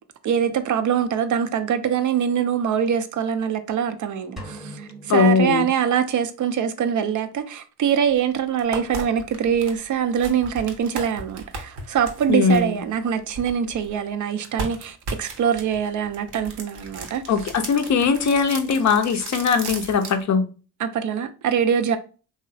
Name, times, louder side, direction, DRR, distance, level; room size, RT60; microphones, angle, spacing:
voice 1, 0.2-17.2 20.8-22.0, right 8 dB, 45° right, 0.4 m, -23 dB
sound 1, 4.4-6.4, right 1 dB, ahead, 0.8 m, -41 dB
voice 2, 5.1-5.7 12.3-12.8 17.3-20.5, left 5 dB, 40° left, 0.5 m, -20 dB
sound 2, 8.1-8.2 8.6-14.0 14.4-20.2, right 3 dB, 60° right, 0.8 m, -36 dB
3.0 x 2.0 x 2.6 m
hypercardioid pair, 45°, 44 cm